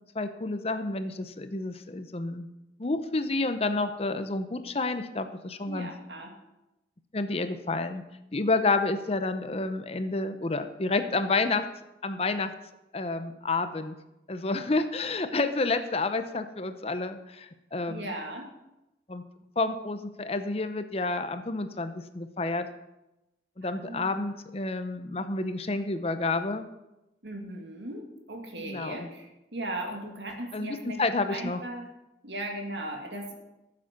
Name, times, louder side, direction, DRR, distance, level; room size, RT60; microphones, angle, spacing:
voice 1, 0.1-2.5 2.8-5.9 7.1-8.0 8.3-11.7 12.0-12.5 12.9-13.9 14.3-18.1 19.1-19.2 19.6-22.7 23.6-26.6 28.6-29.1 30.5-31.6, left 3 dB, 35° left, 10 dB, 0.7 m, -29 dB
voice 2, 5.7-6.3 17.9-18.5 23.6-24.2 27.2-31.0 31.3-31.9 32.2-33.3, right 1 dB, 75° right, 3 dB, 2.2 m, -37 dB
13.5 x 7.5 x 5.9 m, 0.95 s
head